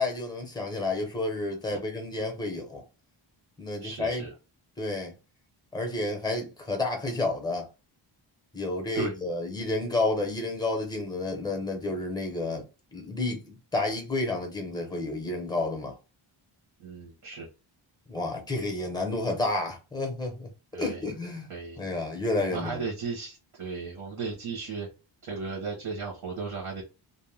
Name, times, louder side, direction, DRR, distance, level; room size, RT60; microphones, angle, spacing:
voice 1, 0.0-2.8 3.6-4.3 4.8-5.1 5.7-7.7 8.5-12.6 12.9-15.9 18.1-20.5 20.8-21.5 21.8-22.8, left 2 dB, 10° left, 0.6 m, -30 dB
voice 2, 3.8-4.3 8.9-9.1 16.8-17.5 20.7-21.0 21.5-21.8 22.4-24.9 25.2-26.8, right 4 dB, 70° right, 1.0 m, -35 dB
2.6 x 2.1 x 3.2 m
wide cardioid pair, 170°, 49 cm